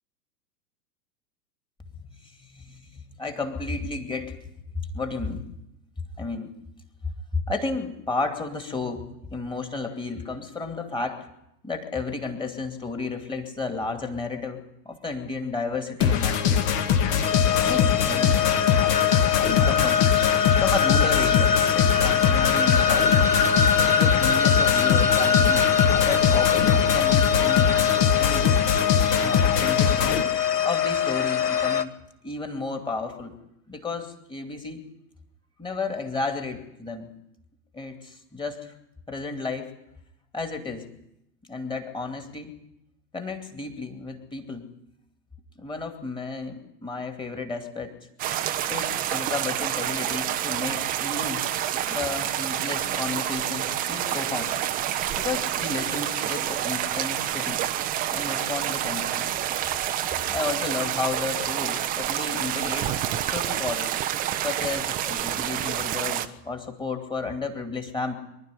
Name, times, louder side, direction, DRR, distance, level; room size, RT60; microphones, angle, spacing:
voice 1, 2.2-4.4 4.9-5.4 6.2-6.5 7.3-11.2 11.6-16.7 17.6-18.5 19.6-20.0 20.6-23.4 23.8-27.8 28.2-28.6 29.1-30.1 30.6-31.9 32.2-33.3 33.7-34.9 35.6-37.1 37.7-38.7 39.1-39.7 40.3-40.9 41.5-42.6 43.1-44.6 45.6-48.0 48.7-51.4 51.8-54.6 55.2-57.6 58.1-59.3 60.3-63.0 63.3-64.0 64.4-68.1, left 3 dB, 10° left, 5 dB, 2.5 m, -32 dB
sound 1, 16.0-30.2, left 8 dB, 35° left, 1.8 m, -22 dB
sound 2, 17.2-31.8, left 7 dB, 75° left, 1.5 m, -23 dB
sound 3, 48.2-66.3, right 11 dB, 15° right, 0.8 m, -28 dB
24.5 x 12.0 x 9.9 m, 0.82 s
figure-of-eight pair, 100°, 48 cm